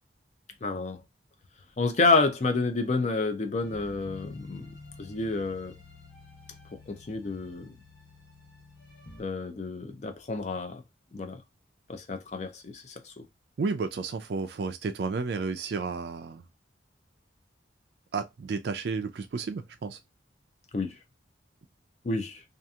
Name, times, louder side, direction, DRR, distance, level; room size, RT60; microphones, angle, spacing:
voice 1, 0.6-1.0 1.8-4.7 5.0-5.7 6.9-7.7 9.2-10.8 11.1-11.4 11.9-13.2 20.7-20.9 22.0-22.4, left 3 dB, 35° left, 0.4 m, -29 dB
sound 1, 3.6-9.2, left 2 dB, 65° left, 1.0 m, -49 dB
voice 2, 13.6-16.4 18.1-20.0, right 4 dB, 60° right, 0.4 m, -32 dB
2.8 x 2.4 x 2.3 m
head